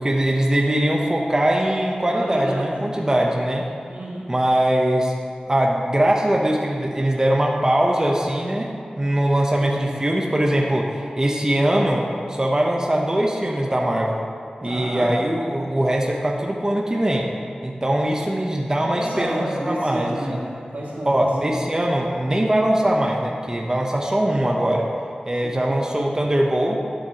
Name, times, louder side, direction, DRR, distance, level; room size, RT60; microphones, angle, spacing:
voice 1, 0.0-3.7 4.3-5.1 5.5-14.2 14.6-17.3 17.6-20.1 21.1-24.9 25.3-26.8, right 1 dB, 25° right, -1 dB, 0.8 m, -21 dB
voice 2, 2.1-2.7 3.9-4.3 9.6-9.8 14.6-15.1 18.9-21.6 25.4-25.6, right 1 dB, 85° right, -7 dB, 2.1 m, -30 dB
12.0 x 7.3 x 2.9 m, 2.4 s
wide cardioid pair, 70°, 3 cm